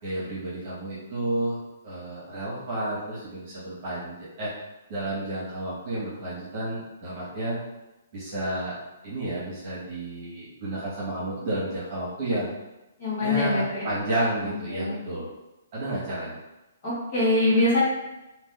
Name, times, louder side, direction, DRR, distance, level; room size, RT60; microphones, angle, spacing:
voice 1, 0.0-4.5 4.9-7.6 8.1-8.7 9.0-12.5 13.2-15.3 15.7-16.4, right 1 dB, 25° right, -9 dB, 1.2 m, -31 dB
voice 2, 13.0-13.9 14.4-15.0 16.8-17.8, left 2 dB, 30° left, -10 dB, 1.3 m, -24 dB
2.7 x 2.4 x 3.6 m, 1.0 s
hypercardioid pair, 175°, 0 cm